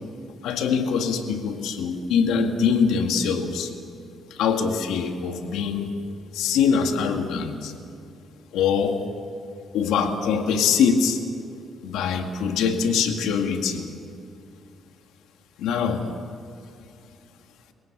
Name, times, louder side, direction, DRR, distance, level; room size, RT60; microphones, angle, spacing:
voice 1, 0.4-3.7 4.4-6.0 6.3-7.7 8.5-9.0 9.7-11.2 11.8-13.9 15.6-16.1, left 6 dB, 90° left, 5 dB, 2.0 m, -23 dB
28.0 x 17.5 x 6.1 m, 2.6 s
cardioid pair, 90°, 0 cm